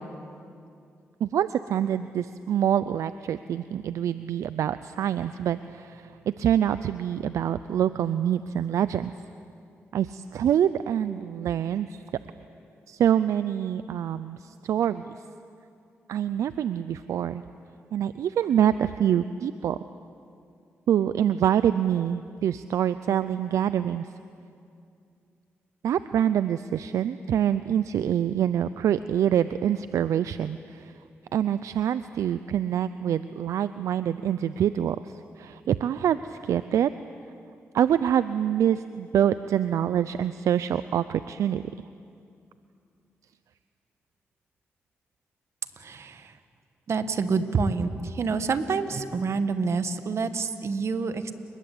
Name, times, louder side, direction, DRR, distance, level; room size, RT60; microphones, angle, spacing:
voice 1, 1.2-6.1 6.4-9.1 9.9-12.0 12.9-15.1 16.1-17.4 17.9-19.8 20.9-24.1 25.8-30.9 31.3-35.0 35.4-36.9 37.7-41.6, right 9 dB, 80° right, 13 dB, 0.5 m, -25 dB
voice 2, 45.8-46.4 46.9-51.3, right 4 dB, 60° right, 9 dB, 1.8 m, -27 dB
29.5 x 20.5 x 8.7 m, 2.5 s
cardioid pair, 55°, 5 cm